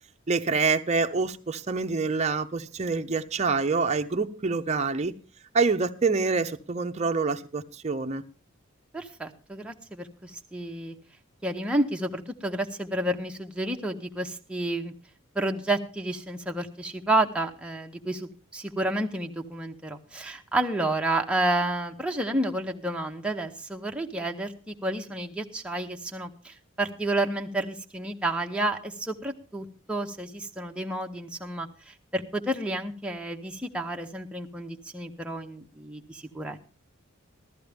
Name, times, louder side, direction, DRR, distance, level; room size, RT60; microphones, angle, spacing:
voice 1, 0.3-5.1 5.5-8.2, right 4 dB, 30° right, 0.6 m, -26 dB
voice 2, 8.9-10.9 11.4-14.9 15.3-36.6, right 1 dB, 5° right, 0.8 m, -30 dB
15.0 x 13.0 x 3.4 m
head